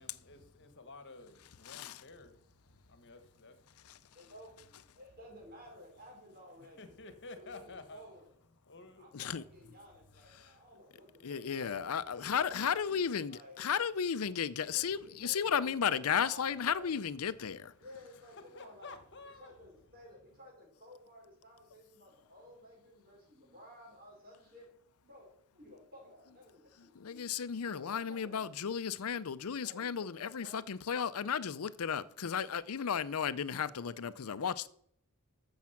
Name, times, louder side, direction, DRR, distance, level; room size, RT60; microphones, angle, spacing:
voice 1, 0.0-4.1 6.8-8.0 8.6-9.1 10.3-10.7 18.5-19.5, left 3 dB, 55° left, 1.4 m, -52 dB
voice 2, 1.7-2.0 9.1-9.4 11.2-17.7 27.0-34.7, left 7 dB, 80° left, 0.5 m, -34 dB
voice 3, 4.1-7.0 7.4-8.3 9.0-12.7 13.3-13.7 14.5-16.9 17.8-18.9 19.3-24.7 25.0-27.2 27.6-28.6 29.6-30.6, left 1 dB, 45° right, 5.6 m, -55 dB
13.5 x 7.3 x 5.9 m
head